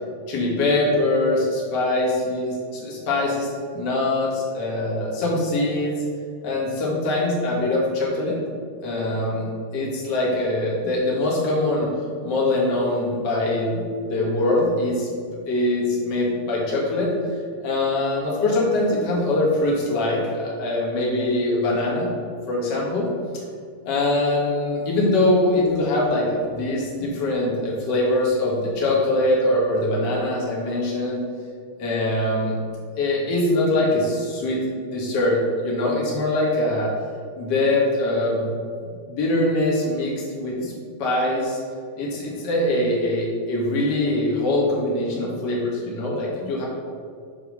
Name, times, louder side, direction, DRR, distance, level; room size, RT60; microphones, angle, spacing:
voice 1, 0.3-6.0 6.4-8.4 8.8-11.9 12.2-15.1 15.5-22.1 22.5-23.1 23.3-23.4 23.9-31.2 31.8-32.6 33.0-34.6 34.9-36.9 37.4-38.7 39.0-40.7 41.0-41.6 42.0-46.7, left 1 dB, 40° left, -4 dB, 2.2 m, -23 dB
7.4 x 4.6 x 6.5 m, 2.2 s
omnidirectional pair, 3.4 m